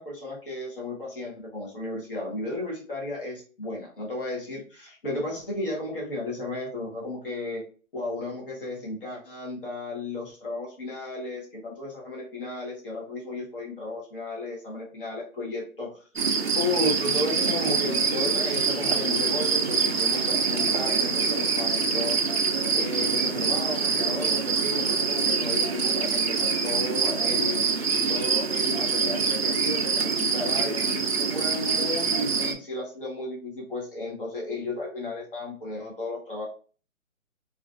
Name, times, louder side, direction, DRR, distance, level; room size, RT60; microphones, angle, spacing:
voice 1, 0.0-7.6 7.9-16.1 16.5-22.4 22.7-27.7 28.1-36.5, left 2 dB, 40° left, -3 dB, 1.3 m, -34 dB
sound 1, 16.2-32.5, right 5 dB, 50° right, 0.5 m, -25 dB
3.0 x 2.5 x 2.4 m, 0.38 s
hypercardioid pair, 165°, 41 cm